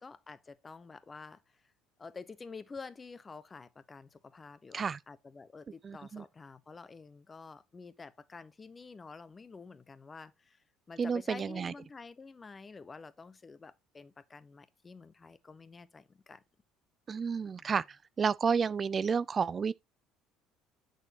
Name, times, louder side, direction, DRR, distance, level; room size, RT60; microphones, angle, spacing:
voice 1, 0.0-1.4 2.0-16.4 17.5-17.7, left 4 dB, 25° left, 0.9 m, -49 dB
voice 2, 5.8-6.2 11.0-11.7 17.1-19.7, right 6 dB, 35° right, 0.3 m, -31 dB
8.9 x 6.3 x 2.9 m
figure-of-eight pair, 60°, 0 cm